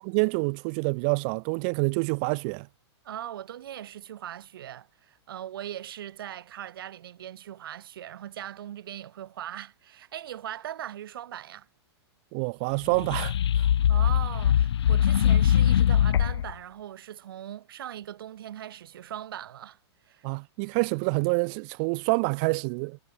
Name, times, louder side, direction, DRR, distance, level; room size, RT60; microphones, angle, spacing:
voice 1, 0.0-2.7 12.3-13.7 20.2-23.0, right 36 dB, 20° right, 0.4 m, -27 dB
voice 2, 3.0-11.7 13.9-19.8 20.1-20.3, right 11 dB, 55° right, 3.7 m, -40 dB
sound 1, 12.8-16.5, left 10 dB, 70° left, 1.2 m, -22 dB
hypercardioid pair, 180°, 14 cm